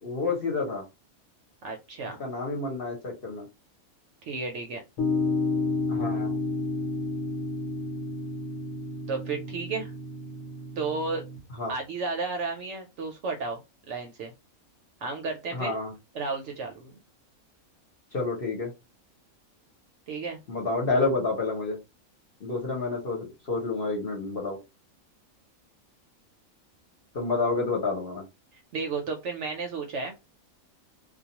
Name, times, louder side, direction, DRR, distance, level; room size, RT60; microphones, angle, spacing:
voice 1, 0.0-0.8 2.2-3.5 5.9-6.4 11.6-11.7 15.5-15.9 18.1-18.7 20.5-21.8 22.4-24.6 27.1-28.2, left 3 dB, 45° left, -1 dB, 0.9 m, -29 dB
voice 2, 1.6-2.2 4.2-4.8 9.1-9.9 10.8-11.2 11.7-13.6 13.9-14.3 15.0-15.7 16.1-17.0 20.1-20.4 28.5-30.2, right 4 dB, 65° right, 4 dB, 0.8 m, -33 dB
sound 1, 5.0-11.4, left 3 dB, 70° left, 1.1 m, -31 dB
2.3 x 2.3 x 2.8 m, 0.24 s
omnidirectional pair, 1.5 m